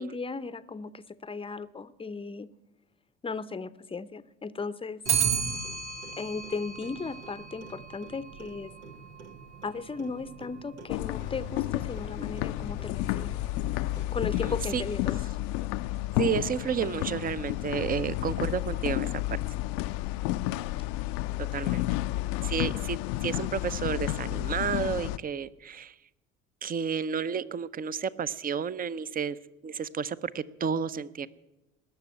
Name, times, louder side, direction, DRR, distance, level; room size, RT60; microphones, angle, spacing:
voice 1, 0.0-2.5 3.2-5.0 6.2-8.7 9.6-13.3 14.1-15.2, left 4 dB, 15° left, 15 dB, 0.7 m, -36 dB
Clock, 5.1-14.4, right 7 dB, 85° right, 1.3 m, -36 dB
sound 1, 10.9-25.2, left 16 dB, 60° left, 0.6 m, -31 dB
voice 2, 14.4-14.8 16.2-19.4 21.5-21.8 22.4-25.9 26.6-29.4 29.6-31.3, right 7 dB, 25° right, 17 dB, 0.7 m, -31 dB
20.0 x 6.8 x 9.6 m, 0.98 s
hypercardioid pair, 65°, 33 cm